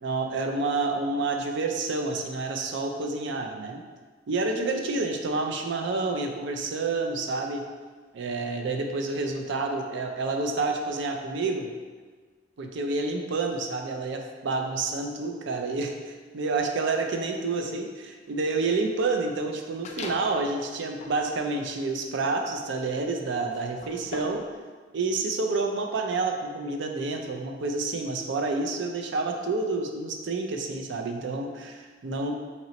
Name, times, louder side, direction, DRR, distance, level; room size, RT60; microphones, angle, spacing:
voice 1, 0.0-3.8 4.3-7.6 8.1-11.7 12.6-24.5 24.9-32.3, right 3 dB, 70° right, 3 dB, 0.4 m, -29 dB
sound 1, 19.8-20.4 20.9-24.5, left 3 dB, 35° left, 0.3 m, -42 dB
3.0 x 2.9 x 4.1 m, 1.4 s
head